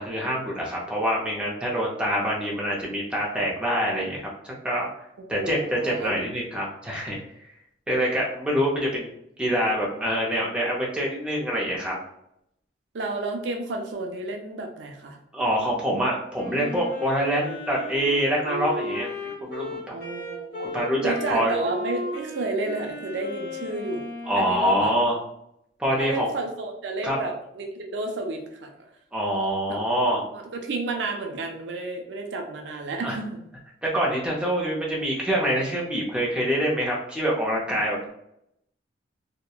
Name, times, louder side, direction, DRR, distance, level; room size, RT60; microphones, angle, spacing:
voice 1, 0.0-4.9 5.3-7.2 7.9-9.1 9.4-12.0 15.3-19.9 20.7-21.6 24.3-25.2 25.8-26.3 27.0-27.2 29.1-30.2 33.0-33.2 33.8-38.1, equal, 5° right, -4 dB, 0.5 m, -25 dB
voice 2, 5.3-6.1 12.9-15.2 19.9-24.1 24.4-24.9 26.0-28.7 29.7-29.8 30.3-33.4, right 2 dB, 70° right, 2 dB, 0.4 m, -31 dB
Wind instrument woodwind instrument, 16.3-24.8, left 2 dB, 50° left, 1.0 m, -35 dB
2.8 x 2.1 x 2.3 m, 0.76 s
head